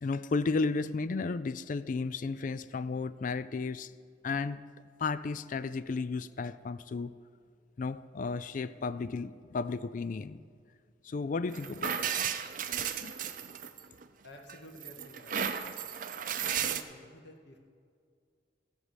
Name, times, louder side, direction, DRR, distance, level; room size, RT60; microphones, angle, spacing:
voice 1, 0.0-3.9 4.2-4.6 5.0-7.1 7.8-10.4 11.0-12.3 13.0-13.1, left 4 dB, 45° left, 15 dB, 0.4 m, -33 dB
sound 1, 11.5-14.0 14.5-16.8, right 8 dB, 50° right, 0.6 m, -34 dB
voice 2, 14.2-15.5 16.4-17.6, equal, 70° left, 2 dB, 1.7 m, -51 dB
16.0 x 5.5 x 8.0 m, 2.1 s
head